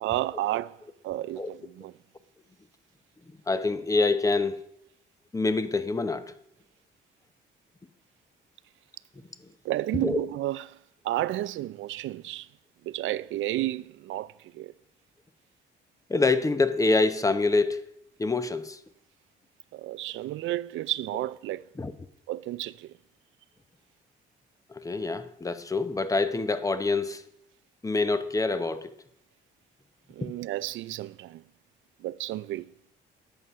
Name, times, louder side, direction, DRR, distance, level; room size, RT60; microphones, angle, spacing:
voice 1, 0.0-1.9 9.6-10.8 11.0-12.5 12.8-14.7 19.7-21.6 22.3-22.9 30.1-31.4 32.0-32.7, right 15 dB, 75° right, 0.5 m, -32 dB
voice 2, 3.5-4.6 5.3-6.3 10.0-10.2 16.1-17.9 18.2-18.8 21.8-21.9 24.7-27.2 27.8-28.9, left 3 dB, 15° left, 0.9 m, -26 dB
11.0 x 7.7 x 5.6 m
cardioid pair, 90°, 20 cm